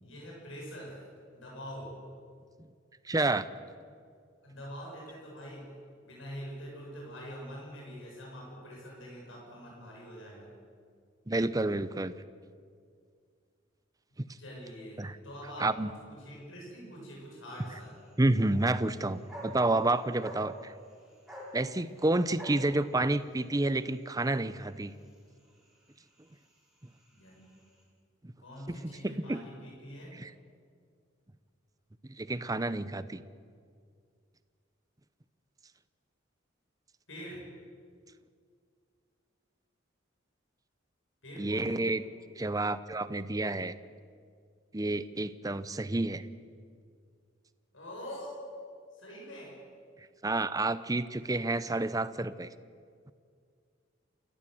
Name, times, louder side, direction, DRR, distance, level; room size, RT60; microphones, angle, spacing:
voice 1, 0.0-1.0 1.3-1.9 4.4-5.7 6.0-10.5 14.4-15.7 16.1-17.9 27.1-27.5 28.4-30.2 37.1-37.4 41.2-41.8 47.7-48.3 48.9-49.5, equal, 80° left, -3 dB, 7.1 m, -44 dB
voice 2, 3.0-3.4 11.3-12.1 15.0-15.2 15.6-15.9 18.2-20.7 21.5-24.9 28.2-28.3 28.7-29.4 30.1-30.3 32.2-33.2 41.4-42.0 42.4-43.7 44.7-46.3 50.2-52.5, right 2 dB, 20° right, 14 dB, 0.7 m, -29 dB
sound 1, 17.5-27.8, equal, ahead, 5.7 m, -51 dB
29.0 x 14.0 x 7.8 m, 2.2 s
head